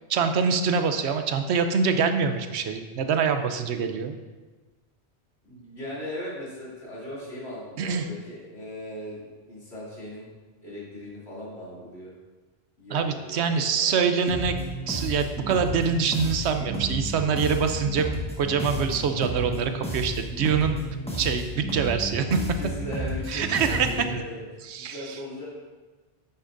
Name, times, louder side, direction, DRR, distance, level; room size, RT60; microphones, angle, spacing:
voice 1, 0.1-4.2 7.8-8.1 12.9-14.6 14.9-18.1 18.4-20.8 21.1-22.4 23.3-23.9 24.6-25.2, right 6 dB, 80° right, 7 dB, 0.9 m, -25 dB
voice 2, 5.4-9.2 9.5-10.3 10.6-12.1 12.8-13.9 22.3-25.5, left 1 dB, 75° left, -7 dB, 3.0 m, -38 dB
sound 1, 14.3-24.2, right 1 dB, 5° left, 1.5 m, -32 dB
10.0 x 8.3 x 2.6 m, 1.3 s
omnidirectional pair, 1.1 m